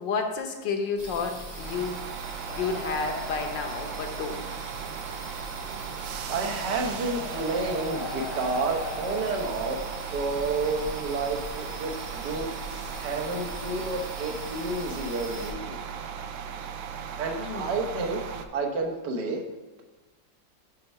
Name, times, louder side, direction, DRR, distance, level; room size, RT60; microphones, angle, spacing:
voice 1, 0.0-2.0 2.3-4.4 17.4-17.8, left 5 dB, 70° left, 5 dB, 1.5 m, -31 dB
sound 1, 1.0-15.5, right 1 dB, 25° right, 1.1 m, -42 dB
sound 2, 1.4-18.5, right 7 dB, 90° right, 1.4 m, -37 dB
sound 3, 2.5-4.6 5.9-6.1 6.8-10.4 11.5-11.6, left 3 dB, 45° left, 0.7 m, -40 dB
voice 2, 6.3-9.8 10.1-15.8 17.2-18.2 18.5-19.4, right 3 dB, 65° right, 2 dB, 1.6 m, -30 dB
6.8 x 5.4 x 5.4 m, 1.3 s
omnidirectional pair, 2.1 m